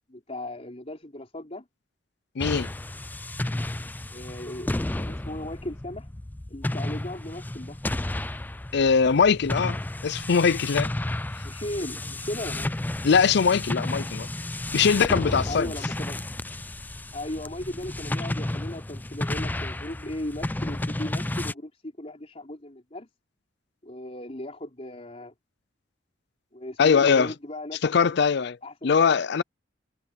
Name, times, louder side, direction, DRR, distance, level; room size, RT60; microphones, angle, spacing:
voice 1, 0.1-1.6 4.1-6.1 6.5-7.8 11.4-12.7 15.5-16.2 17.1-23.1 23.8-25.3 26.5-28.1 28.6-28.9, left 1 dB, 35° left, 4.1 m, -37 dB
voice 2, 2.4-2.7 8.7-10.9 13.0-14.3 14.7-15.7 26.8-27.3 27.8-28.6 28.8-29.4, left 6 dB, 65° left, 0.5 m, -21 dB
sound 1, 2.4-21.5, left 1 dB, 10° left, 0.4 m, -32 dB
head